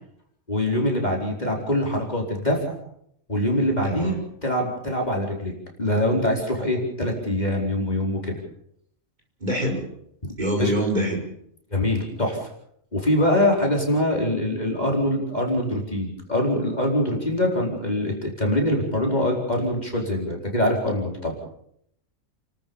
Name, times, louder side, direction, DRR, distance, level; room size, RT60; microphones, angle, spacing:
voice 1, 0.5-2.8 3.3-4.1 4.4-5.5 5.8-8.4 10.2-10.3 10.6-10.7 11.7-12.5 12.9-21.3, left 1 dB, 30° left, 0 dB, 4.7 m, -24 dB
voice 2, 3.8-4.2 9.4-9.8 10.4-11.2, right 1 dB, 35° right, 0 dB, 5.0 m, -24 dB
30.0 x 13.5 x 7.1 m, 0.72 s
omnidirectional pair, 1.4 m